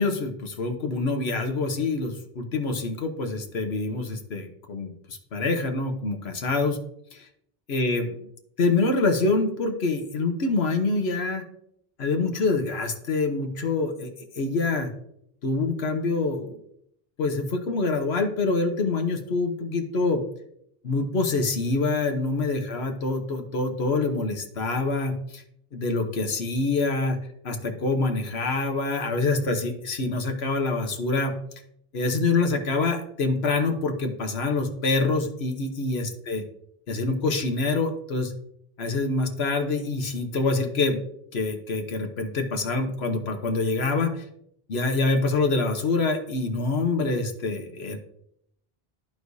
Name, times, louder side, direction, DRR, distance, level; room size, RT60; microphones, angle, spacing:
voice 1, 0.0-6.8 7.1-7.3 7.7-8.3 8.6-11.4 12.0-14.1 14.4-14.9 15.4-16.6 17.2-20.2 20.8-25.4 25.7-27.2 27.4-31.3 31.9-36.4 36.9-38.3 38.8-41.0 41.3-44.2 44.7-48.0, left 3 dB, 80° left, 5 dB, 1.3 m, -26 dB
14.0 x 4.7 x 2.7 m, 0.74 s
omnidirectional pair, 1.0 m